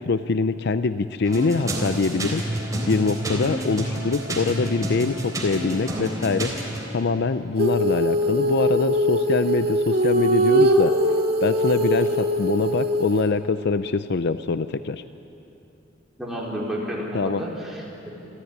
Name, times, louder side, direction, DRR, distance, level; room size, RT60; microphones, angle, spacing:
voice 1, 0.0-6.5 6.9-10.9 11.4-15.0 17.1-17.4, left 4 dB, 60° left, 12 dB, 0.5 m, -24 dB
sound 1, 1.2-6.9, right 1 dB, 20° right, 3.7 m, -29 dB
Female singing, 7.6-13.3, equal, 55° right, 2.0 m, -21 dB
voice 2, 16.2-18.1, equal, ahead, -5 dB, 4.4 m, -31 dB
28.5 x 13.5 x 9.5 m, 2.9 s
head